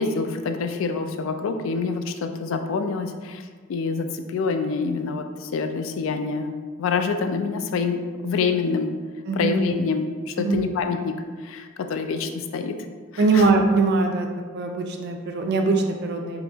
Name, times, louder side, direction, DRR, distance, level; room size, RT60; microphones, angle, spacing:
voice 1, 0.0-3.4 3.7-8.9 9.3-11.2 11.4-12.8 13.1-13.5, left 4 dB, 70° left, 6 dB, 0.3 m, -26 dB
voice 2, 9.3-9.6 10.4-10.6 13.2-14.3 14.5-16.4, right 3 dB, 50° right, 3 dB, 0.4 m, -21 dB
4.0 x 2.8 x 2.3 m, 1.5 s
head